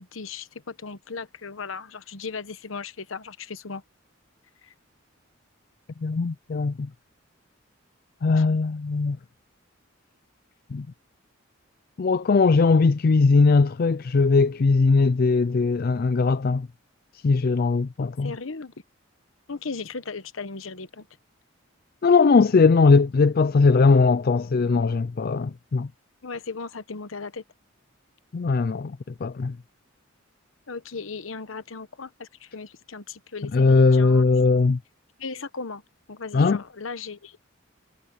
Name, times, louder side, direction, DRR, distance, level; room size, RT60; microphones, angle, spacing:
voice 1, 0.0-3.8 4.6-4.7 8.4-8.5 18.2-18.7 19.5-21.1 26.2-27.4 30.7-34.3 35.2-35.8 36.1-37.4, left 4 dB, 80° left, 1.1 m, -36 dB
voice 2, 6.0-6.9 8.2-9.2 10.7-10.9 12.0-16.7 17.2-18.3 22.0-25.9 28.3-29.6 33.5-34.8 36.3-36.6, left 4 dB, 50° left, 0.4 m, -20 dB
head